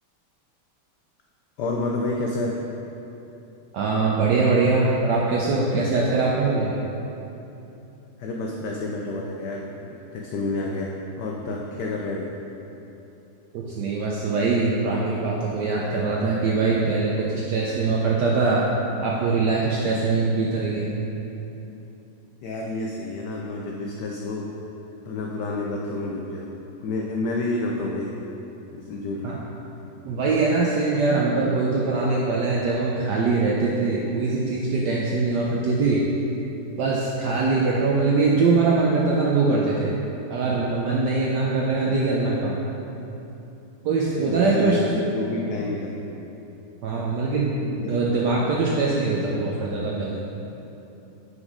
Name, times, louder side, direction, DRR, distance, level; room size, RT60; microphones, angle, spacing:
voice 1, 1.6-2.6 8.2-12.3 22.4-24.5 25.0-26.5 26.8-28.1 28.7-29.3 37.5-37.7 44.2-45.9 47.8-47.9, left 2 dB, 90° left, -1 dB, 0.9 m, -29 dB
voice 2, 3.7-6.7 13.5-18.6 19.0-20.9 29.2-29.4 30.0-36.0 36.8-39.9 40.3-42.6 43.8-44.8 46.8-50.2, right 3 dB, 75° right, -4 dB, 0.9 m, -22 dB
5.3 x 4.9 x 4.9 m, 3.0 s
omnidirectional pair, 2.4 m